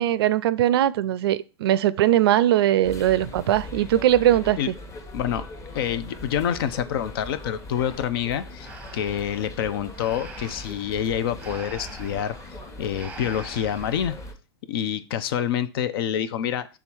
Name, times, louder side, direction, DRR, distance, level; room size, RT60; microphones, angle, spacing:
voice 1, 0.0-4.6, right 12 dB, 60° right, 0.5 m, -20 dB
sound 1, 2.8-14.3, left 1 dB, 20° left, 1.2 m, -40 dB
voice 2, 5.1-5.4 5.7-12.4 12.8-14.2 14.7-16.7, left 9 dB, 55° left, 0.7 m, -27 dB
Breathing, 8.6-14.1, right 4 dB, 10° right, 0.8 m, -45 dB
6.9 x 3.7 x 4.5 m
hypercardioid pair, 110°, 14 cm